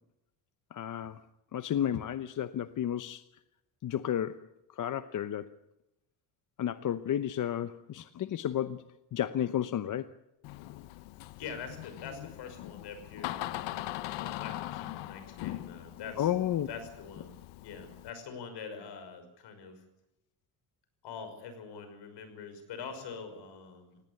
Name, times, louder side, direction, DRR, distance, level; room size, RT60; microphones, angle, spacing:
voice 1, 0.7-1.2 1.5-3.2 3.8-4.5 4.7-5.6 6.6-8.8 9.1-10.1 16.2-16.7, left 10 dB, 45° left, 0.8 m, -32 dB
Door, 10.4-18.1, left 16 dB, 85° left, 1.0 m, -41 dB
voice 2, 11.4-16.3 16.7-19.8 21.0-24.0, left 5 dB, 70° left, 5.9 m, -44 dB
18.0 x 17.5 x 9.7 m
cardioid pair, 105°, 43 cm